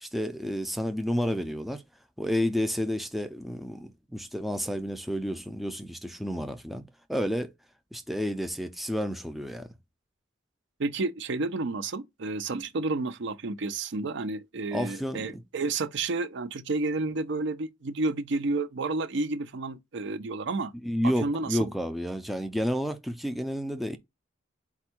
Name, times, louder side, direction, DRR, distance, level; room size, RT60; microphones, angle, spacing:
voice 1, 0.0-1.8 2.2-6.8 7.1-7.5 7.9-9.7 14.7-15.4 20.8-24.0, equal, ahead, 0.4 m, -30 dB
voice 2, 10.8-20.7 21.2-21.7, right 3 dB, 65° right, 0.5 m, -31 dB
4.4 x 2.4 x 4.2 m
head